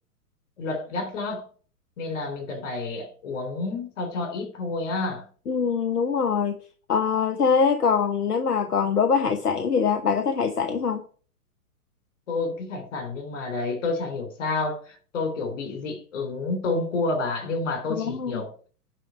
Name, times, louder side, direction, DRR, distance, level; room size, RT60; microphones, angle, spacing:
voice 1, 0.6-1.5 2.0-5.3 12.3-18.5, left 3 dB, 55° left, 3.5 m, -29 dB
voice 2, 5.5-6.6 6.9-11.0 17.9-18.4, left 6 dB, 80° left, 1.0 m, -23 dB
10.0 x 3.8 x 6.9 m
figure-of-eight pair, 115°, 46 cm